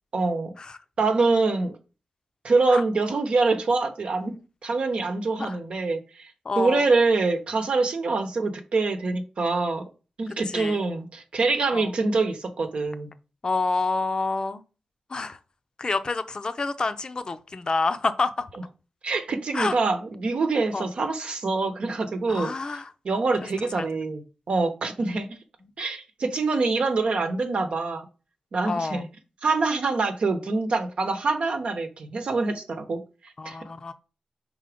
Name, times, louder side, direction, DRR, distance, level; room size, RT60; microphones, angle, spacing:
voice 1, 0.1-0.5 1.0-1.8 2.4-4.3 4.6-6.3 6.6-9.9 10.2-13.1 19.0-22.5 23.0-25.4 25.8-28.1 28.5-29.1 29.4-33.6, right 3 dB, 65° right, 0.9 m, -25 dB
voice 2, 6.4-6.8 10.5-10.8 11.7-11.9 13.4-14.6 15.1-15.4 15.8-18.5 19.5-19.8 20.7-20.9 22.3-22.9 23.8-23.9 28.6-29.0 33.4-33.9, left 3 dB, 40° left, 0.6 m, -28 dB
5.0 x 3.9 x 5.0 m
wide cardioid pair, 110°, 2 cm